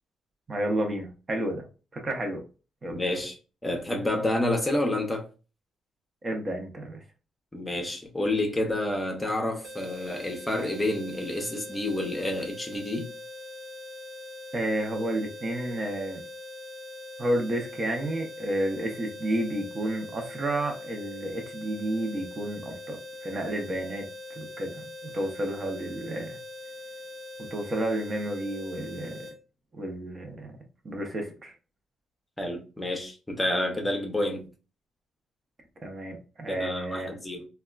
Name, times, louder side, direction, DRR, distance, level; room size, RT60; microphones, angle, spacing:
voice 1, 0.5-1.6 1.9-2.4 2.8-3.0 6.2-7.0 14.5-16.2 17.2-24.1 24.4-26.4 27.5-29.3 29.7-30.5 30.8-31.5 35.8-37.1, right 1 dB, 35° right, 0.7 m, -31 dB
voice 2, 2.9-3.4 3.6-5.3 7.5-13.1 32.4-34.5 36.5-37.5, left 1 dB, 15° left, 0.7 m, -29 dB
sound 1, 9.6-29.4, left 2 dB, 70° right, 0.7 m, -42 dB
3.4 x 2.2 x 2.3 m
cardioid pair, 90°, 0 cm